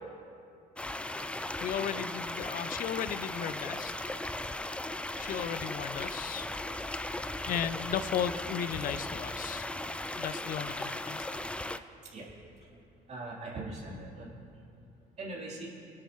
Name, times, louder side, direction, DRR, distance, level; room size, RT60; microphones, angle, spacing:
sound 1, 0.8-11.8, left 1 dB, 5° left, 0.4 m, -37 dB
voice 1, 1.6-3.9 5.2-6.5 7.5-9.7 10.2-11.3, left 9 dB, 55° left, 13 dB, 0.6 m, -35 dB
voice 2, 13.1-14.3 15.2-15.7, right 2 dB, 40° right, -6 dB, 3.6 m, -40 dB
25.0 x 10.5 x 3.1 m, 2.6 s
cardioid pair, 110°, 17 cm